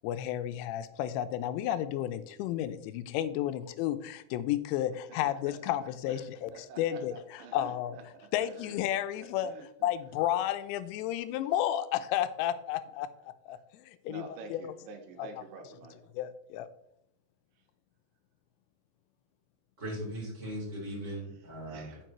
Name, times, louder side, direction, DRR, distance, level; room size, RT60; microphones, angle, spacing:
voice 1, 0.0-8.0 8.3-9.6 9.8-13.1 13.5-14.6 15.2-15.3 16.1-16.7, left 12 dB, 85° left, 11 dB, 2.8 m, -32 dB
voice 2, 6.1-8.0 8.4-8.8 9.2-9.9 14.1-16.0 21.7-22.0, right 4 dB, 80° right, 3 dB, 3.5 m, -48 dB
voice 3, 19.8-21.9, right 1 dB, 20° right, -5 dB, 3.2 m, -38 dB
9.1 x 7.2 x 3.0 m, 0.74 s
omnidirectional pair, 5.2 m